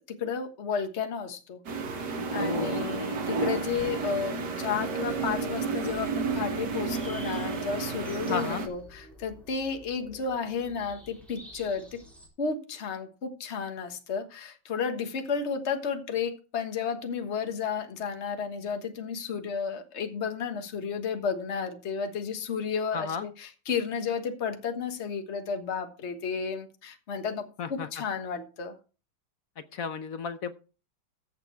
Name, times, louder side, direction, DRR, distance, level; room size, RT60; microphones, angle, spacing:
voice 1, 0.2-1.6 2.3-12.0 12.4-28.7, left 6 dB, 40° left, 6 dB, 1.6 m, -32 dB
sound 1, 1.7-8.7, right 4 dB, 60° right, 2.1 m, -31 dB
voice 2, 2.4-2.8 8.3-8.7 22.9-23.3 27.6-27.9 29.7-30.5, left 6 dB, 60° left, 11 dB, 1.0 m, -33 dB
sound 2, 5.4-12.3, left 1 dB, ahead, 4.2 m, -51 dB
15.5 x 6.9 x 4.6 m, 0.35 s
omnidirectional pair, 2.0 m